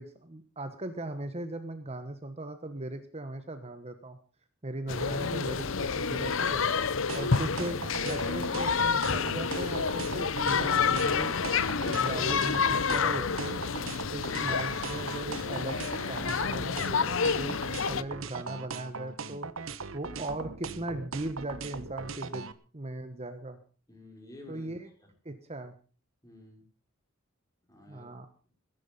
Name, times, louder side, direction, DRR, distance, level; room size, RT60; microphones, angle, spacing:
voice 1, 0.0-4.2 4.6-6.6 7.1-7.8 8.1-11.6 11.8-13.6 14.1-17.0 17.3-19.5 19.9-23.6 24.5-24.9 25.2-25.7 27.9-28.3, right 2 dB, 30° right, 9 dB, 1.3 m, -38 dB
sound 1, 4.9-18.0, left 5 dB, 70° left, 0.8 m, -29 dB
sound 2, 7.1-22.5, right 4 dB, 70° right, 1.2 m, -39 dB
voice 2, 23.9-24.7 25.0-25.1 26.2-26.7 27.7-28.1, left 2 dB, 15° left, 1 dB, 5.6 m, -51 dB
20.5 x 11.0 x 5.4 m, 0.38 s
head